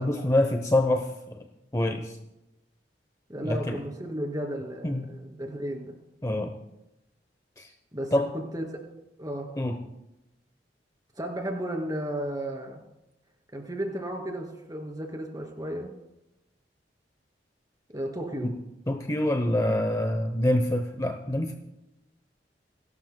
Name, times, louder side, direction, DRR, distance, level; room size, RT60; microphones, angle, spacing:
voice 1, 0.0-1.4 1.7-2.2 3.4-3.8 4.8-5.1 6.2-6.5 7.6-7.7 8.1-8.3 9.6-9.8 18.4-18.6 18.9-21.5, left 1 dB, 20° left, 6 dB, 0.8 m, -26 dB
voice 2, 3.3-6.0 7.9-8.6 9.2-9.5 11.1-12.8 13.5-15.9 17.9-18.5, right 1 dB, 20° right, 2 dB, 2.6 m, -34 dB
29.0 x 12.0 x 2.2 m, 0.91 s
head